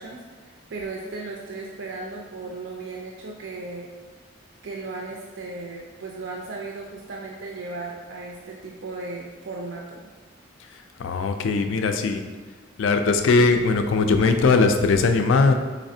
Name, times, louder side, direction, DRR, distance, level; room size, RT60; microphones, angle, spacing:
voice 1, 0.0-3.9 4.6-10.1, right 3 dB, 70° right, -1 dB, 0.4 m, -36 dB
voice 2, 11.0-12.2 12.8-15.5, left 4 dB, 75° left, 7 dB, 0.3 m, -19 dB
4.0 x 3.2 x 2.7 m, 1.5 s
head